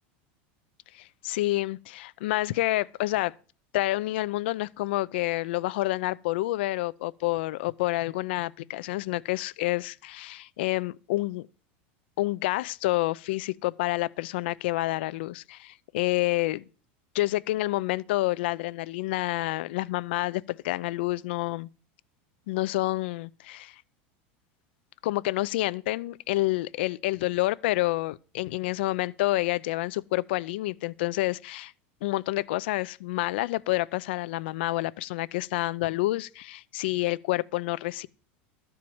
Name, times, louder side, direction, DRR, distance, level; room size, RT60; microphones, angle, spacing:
voice 1, 0.9-3.3 3.7-11.5 12.2-16.6 17.1-21.7 22.5-23.8 25.0-31.7 32.0-38.1, left 18 dB, 70° left, 0.5 m, -28 dB
13.0 x 4.6 x 8.6 m
supercardioid pair, 170°, 6 cm